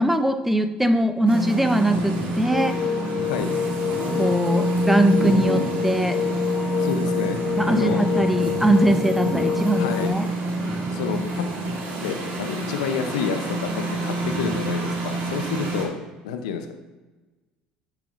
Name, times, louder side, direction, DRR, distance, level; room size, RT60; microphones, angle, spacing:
voice 1, 0.0-2.8 4.2-6.2 7.6-10.3, right 1 dB, 5° right, 10 dB, 0.6 m, -21 dB
sound 1, 1.3-15.8, right 2 dB, 60° right, 2.2 m, -27 dB
sound 2, 2.5-10.1, left 8 dB, 55° left, 0.9 m, -27 dB
voice 2, 6.8-8.1 9.8-10.1 10.9-11.4 12.0-16.0 16.2-16.7, left 7 dB, 80° left, 7 dB, 0.7 m, -29 dB
10.0 x 5.9 x 2.5 m, 1.2 s
hypercardioid pair, 70°, 3 cm